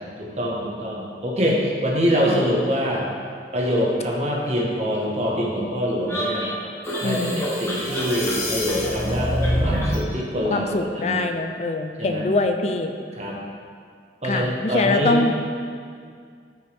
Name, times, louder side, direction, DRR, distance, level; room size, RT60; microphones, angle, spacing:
voice 1, 0.0-3.1 3.5-6.6 7.0-9.3 9.6-11.3 12.0-12.3 13.2-13.4 14.2-15.2, equal, 35° right, -3 dB, 1.5 m, -24 dB
sound 1, 6.1-10.1, equal, 15° left, 1.6 m, -25 dB
voice 2, 7.0-7.5 10.5-13.0 14.2-15.3, left 2 dB, 40° left, 6 dB, 0.5 m, -23 dB
12.5 x 6.6 x 3.5 m, 2.2 s
head